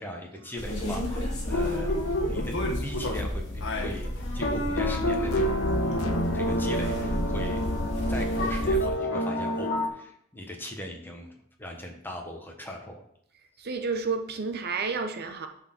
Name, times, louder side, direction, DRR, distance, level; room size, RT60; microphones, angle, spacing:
voice 1, 0.0-2.0 2.3-2.6 2.8-5.7 6.3-7.6 8.1-11.3 11.6-13.0, equal, 10° left, 2 dB, 1.1 m, -39 dB
sound 1, 0.6-8.9, left 1 dB, 30° left, 2.5 m, -32 dB
sound 2, 1.5-3.3 3.6-9.9, equal, 60° left, 1.3 m, -28 dB
sound 3, 4.8-8.0, left 3 dB, 90° left, 0.8 m, -36 dB
voice 2, 13.6-15.5, right 4 dB, 50° right, 6 dB, 0.8 m, -30 dB
9.9 x 4.4 x 5.9 m, 0.71 s
head